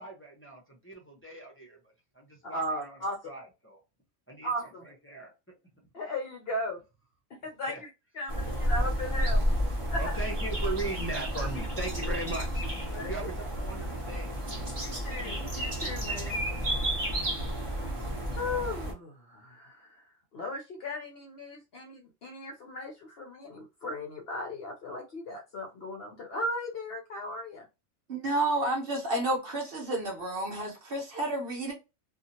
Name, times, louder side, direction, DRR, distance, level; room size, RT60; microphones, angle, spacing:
voice 1, 0.0-1.8 2.1-3.0 3.3-3.8 4.3-4.5 4.8-5.3 7.7-7.8 9.9-14.3, right 2 dB, 15° left, 0.6 m, -38 dB
voice 2, 2.4-3.3 4.4-4.9 5.9-6.8 7.4-9.4 9.9-10.2 12.9-13.1 14.8-16.4 18.3-20.1 20.3-27.7, left 1 dB, 60° left, 0.7 m, -37 dB
sound 1, 8.3-18.9, equal, 25° right, 0.9 m, -31 dB
voice 3, 28.1-31.7, right 1 dB, 50° right, 0.8 m, -30 dB
2.7 x 2.4 x 2.7 m
omnidirectional pair, 1.4 m